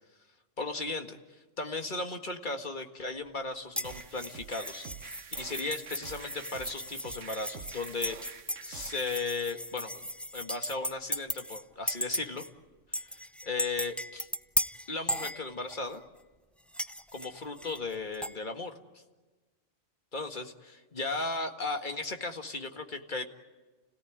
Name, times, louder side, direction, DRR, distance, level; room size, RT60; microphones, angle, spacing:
voice 1, 0.6-1.2 1.6-4.9 5.3-8.2 8.6-10.0 10.3-12.4 12.9-14.3 14.9-16.0 17.1-19.0 20.1-23.2, left 3 dB, 40° left, 5 dB, 1.9 m, -36 dB
sound 1, 3.8-11.6 11.9-12.5 12.9-15.9 16.7-18.4, equal, ahead, 0.4 m, -36 dB
sound 2, 3.8-9.2, right 7 dB, 75° right, 1.5 m, -47 dB
30.0 x 17.0 x 9.3 m, 1.3 s
omnidirectional pair, 1.3 m